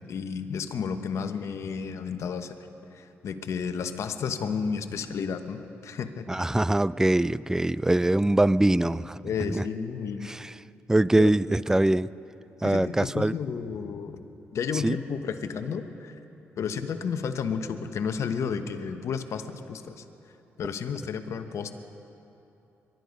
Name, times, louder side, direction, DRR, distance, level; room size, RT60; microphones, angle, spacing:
voice 1, 0.1-2.5 2.9-6.5 9.2-10.3 11.2-11.3 12.6-14.2 14.5-16.1 16.6-20.0 20.6-21.7, left 6 dB, 65° left, 8 dB, 1.0 m, -32 dB
voice 2, 6.3-9.7 10.2-10.5 10.9-12.1 12.6-13.3 14.7-15.0, right 1 dB, 10° right, 19 dB, 0.4 m, -23 dB
23.0 x 12.0 x 5.3 m, 2.9 s
supercardioid pair, 60°, 5 cm